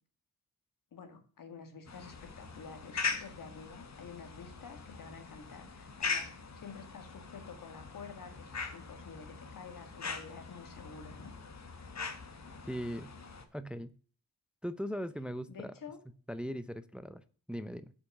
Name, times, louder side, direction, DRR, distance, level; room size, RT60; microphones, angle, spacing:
voice 1, 0.9-11.3 15.5-16.0, left 5 dB, 70° left, 7 dB, 1.9 m, -49 dB
sound 1, 1.9-13.4, left 5 dB, 50° left, 1.4 m, -41 dB
voice 2, 12.7-13.1 13.5-13.9 14.6-15.7 16.3-17.2 17.5-17.9, equal, 5° right, 13 dB, 0.5 m, -39 dB
8.0 x 5.9 x 5.3 m, 0.41 s
cardioid pair, 90°, 34 cm